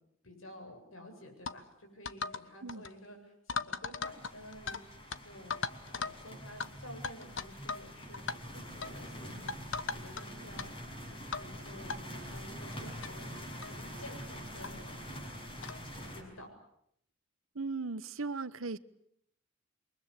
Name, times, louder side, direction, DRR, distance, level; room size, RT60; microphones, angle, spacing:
voice 1, 0.2-5.6 5.9-9.5 9.9-10.8 11.0-13.5 13.8-15.0 16.0-16.5, left 1 dB, 80° left, 7.9 m, -51 dB
sound 1, 1.5-1.6 2.1-2.4 2.7-2.9 3.5-4.8 5.1-5.2 5.5-6.2 6.6-6.7 7.0-7.9 8.1-8.4 8.8-9.0 9.5-10.2 10.6-10.7 11.3-11.5 11.9-12.0 12.7-12.8 13.0-13.1 13.6-13.8 14.6-14.7 15.6-15.8, left 5 dB, 65° left, 1.2 m, -37 dB
sound 2, 4.0-16.2, equal, 25° left, 6.3 m, -45 dB
voice 2, 17.5-18.8, right 4 dB, 75° right, 1.1 m, -37 dB
28.5 x 23.5 x 8.4 m
head